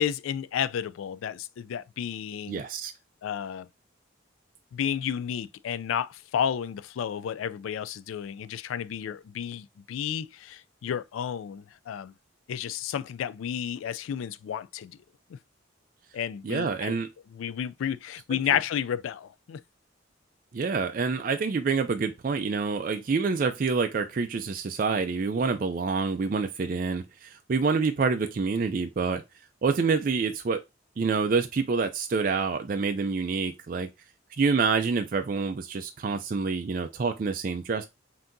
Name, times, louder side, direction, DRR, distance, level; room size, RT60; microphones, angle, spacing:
voice 1, 0.0-2.6 3.2-3.7 4.7-12.1 12.5-15.0 16.1-17.0 17.3-19.6, left 8 dB, 90° left, 0.3 m, -31 dB
voice 2, 2.5-2.9 16.4-17.1 20.5-29.2 29.6-30.6 31.0-33.9 34.4-37.8, right 4 dB, 45° right, 0.3 m, -27 dB
5.7 x 2.7 x 2.6 m
head